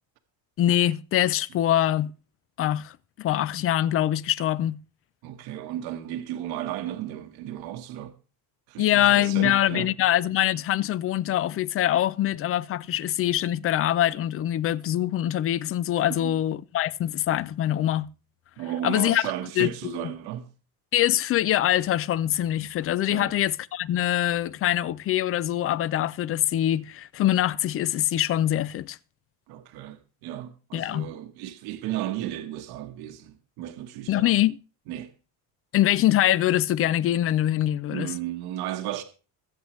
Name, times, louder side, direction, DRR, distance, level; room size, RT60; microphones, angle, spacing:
voice 1, 0.6-2.1 2.6-4.8 8.8-18.1 18.8-19.3 19.6-20.1 20.9-29.0 30.7-31.1 34.1-34.6 35.7-38.1, left 12 dB, 40° left, 0.5 m, -24 dB
voice 2, 5.2-8.1 8.7-9.9 16.1-16.4 18.6-20.5 23.1-23.3 29.5-34.4 34.9-35.1 37.9-39.0, right 12 dB, 80° right, 1.3 m, -34 dB
22.0 x 8.0 x 3.1 m
cardioid pair, 140°, 37 cm